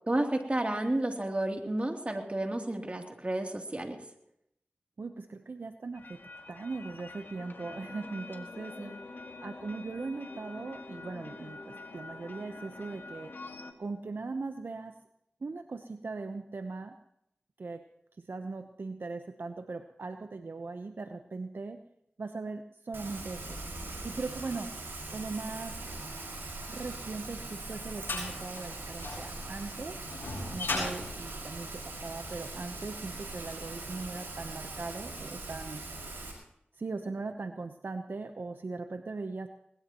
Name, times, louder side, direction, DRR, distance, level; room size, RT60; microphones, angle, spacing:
voice 1, 0.1-4.0 8.8-8.9, right 1 dB, 35° right, 3 dB, 3.0 m, -31 dB
voice 2, 5.0-6.2 6.5-9.0 9.4-13.3 13.8-15.0 15.4-17.0 17.6-17.8 18.2-21.8 22.2-23.6 24.0-24.7 25.1-25.8 26.7-30.0 30.5-35.8 36.7-39.5, right 3 dB, 65° right, 7 dB, 0.9 m, -39 dB
sound 1, 5.9-13.7, left 3 dB, 65° left, 1.9 m, -46 dB
Rain, 22.9-36.3, right 2 dB, 80° right, 5.7 m, -41 dB
sound 2, 27.1-32.4, left 3 dB, 90° left, 7.5 m, -38 dB
21.0 x 20.0 x 3.1 m, 0.76 s
cardioid pair, 45°, 4 cm